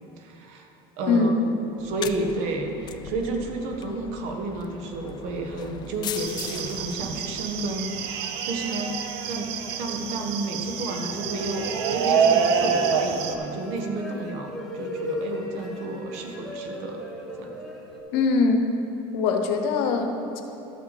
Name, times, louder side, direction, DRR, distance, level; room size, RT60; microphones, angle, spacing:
voice 1, 0.2-0.7 1.0-1.3 1.8-9.5 9.8-17.0 17.4-17.5, right 2 dB, 65° right, 3 dB, 1.3 m, -31 dB
sound 1, 1.8-8.2, left 9 dB, 35° left, 0.4 m, -40 dB
sound 2, 6.1-13.3, right 6 dB, 85° right, 0.7 m, -27 dB
sound 3, 10.9-18.0, left 1 dB, ahead, 1.4 m, -37 dB
voice 2, 18.1-18.7 19.1-20.4, left 4 dB, 70° left, 5 dB, 1.1 m, -22 dB
13.5 x 6.1 x 4.1 m, 2.9 s
supercardioid pair, 130°, 13 cm